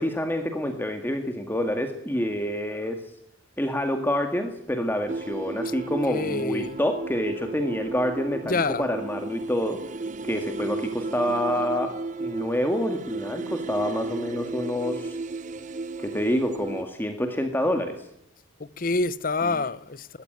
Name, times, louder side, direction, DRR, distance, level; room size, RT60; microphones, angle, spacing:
voice 1, 0.0-3.1 3.6-9.8 10.2-11.9 12.2-15.2 16.0-18.1 19.4-19.6, equal, 10° left, 1.9 m, -27 dB
sound 1, 5.1-16.8, right 3 dB, 40° right, 0.8 m, -34 dB
voice 2, 6.1-6.8 8.4-8.9 18.6-20.1, left 3 dB, 45° left, 0.8 m, -27 dB
20.5 x 16.0 x 9.3 m
head